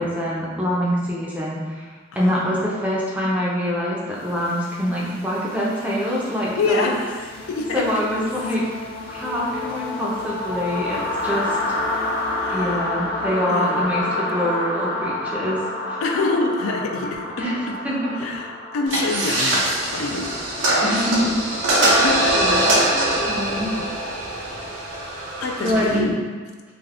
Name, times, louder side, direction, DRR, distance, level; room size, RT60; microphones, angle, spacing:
voice 1, 0.0-1.9 2.2-6.9 7.7-8.6 9.1-11.6 11.9-12.1 12.5-15.6 15.9-16.0 17.4-18.3 20.8-21.4 22.3-22.7 23.2-23.7 25.6-26.1, equal, 5° right, -6 dB, 0.5 m, -25 dB
voice 2, 2.1-2.5 6.6-7.9 12.3-13.0 13.5-13.9 16.0-17.8 18.2-20.3 21.8-22.4 25.4-26.2, left 3 dB, 85° left, 2 dB, 0.4 m, -26 dB
sound 1, 4.3-22.0, left 2 dB, 50° left, 0.7 m, -29 dB
sound 2, 18.9-26.0, right 1 dB, 60° right, 0.6 m, -22 dB
2.5 x 2.4 x 3.3 m, 1.5 s
head